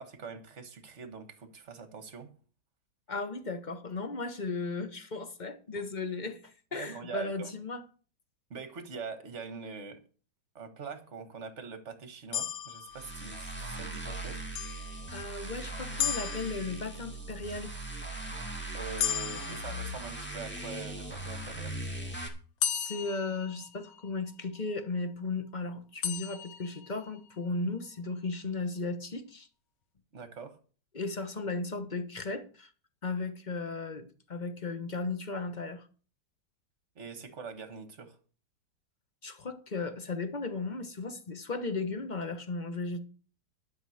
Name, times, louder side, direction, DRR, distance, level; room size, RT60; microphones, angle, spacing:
voice 1, 0.0-2.3 6.7-7.5 8.5-10.0 10.6-14.4 18.7-21.8 30.1-30.6 37.0-38.2, right 5 dB, 45° right, 1.7 m, -43 dB
voice 2, 3.1-7.8 15.1-17.7 22.7-29.5 30.9-32.7 33.0-35.9 39.2-43.0, left 3 dB, 30° left, 1.1 m, -36 dB
sound 1, 12.3-13.7 14.6-15.5 16.0-17.2 19.0-20.5 22.6-24.2 26.0-27.2, left 9 dB, 90° left, 1.6 m, -36 dB
sound 2, 12.9-22.3, right 2 dB, 5° left, 1.9 m, -39 dB
11.5 x 5.8 x 7.9 m
omnidirectional pair, 1.9 m